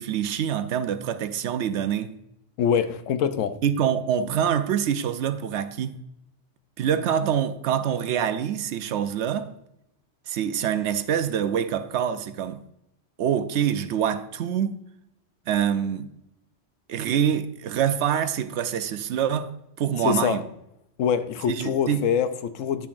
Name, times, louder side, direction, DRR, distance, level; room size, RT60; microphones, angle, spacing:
voice 1, 0.0-2.1 3.6-6.0 6.8-9.5 10.3-12.6 13.2-14.8 15.5-16.1 16.9-19.5 19.8-20.4 21.5-22.0, right 9 dB, 70° right, 0.8 m, -25 dB
voice 2, 2.6-3.5 20.0-20.4 21.0-22.9, left 8 dB, 90° left, 1.0 m, -24 dB
9.7 x 7.0 x 2.5 m
omnidirectional pair, 1.3 m